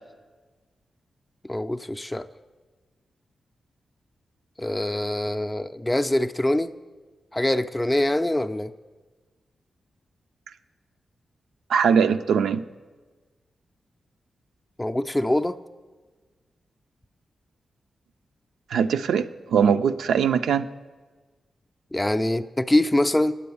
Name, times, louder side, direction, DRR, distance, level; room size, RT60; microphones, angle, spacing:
voice 1, 1.5-2.3 4.6-6.7 7.3-8.7 14.8-15.6 21.9-23.3, left 1 dB, 15° left, 8 dB, 0.4 m, -24 dB
voice 2, 11.7-12.6 18.7-20.7, right 7 dB, 85° right, 10 dB, 0.3 m, -21 dB
8.5 x 7.7 x 6.9 m, 1.4 s
supercardioid pair, 45°, 0 cm